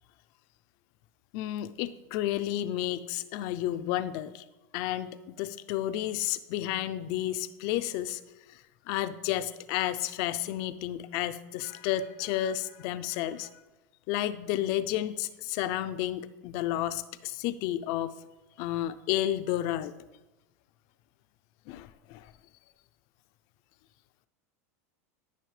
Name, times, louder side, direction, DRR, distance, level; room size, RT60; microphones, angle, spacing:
voice 1, 1.3-4.4 4.7-8.2 8.5-13.5 14.1-18.1 18.6-19.9 21.7-22.3, left 13 dB, 50° left, 12 dB, 0.4 m, -31 dB
12.5 x 5.7 x 3.2 m, 1.1 s
supercardioid pair, 145°, 9 cm